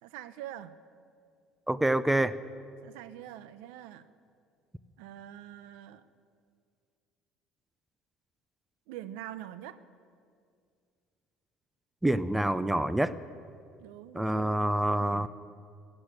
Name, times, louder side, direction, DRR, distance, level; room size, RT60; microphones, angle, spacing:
voice 1, 0.0-0.8 2.8-4.1 5.0-6.0 8.9-9.8 13.8-14.7 15.0-15.3, right 12 dB, 85° right, 13 dB, 0.7 m, -44 dB
voice 2, 1.7-2.4 12.0-13.2 14.1-15.3, right 1 dB, 5° right, 15 dB, 0.6 m, -26 dB
16.5 x 8.6 x 9.1 m, 2.2 s
supercardioid pair, 95°, 2 cm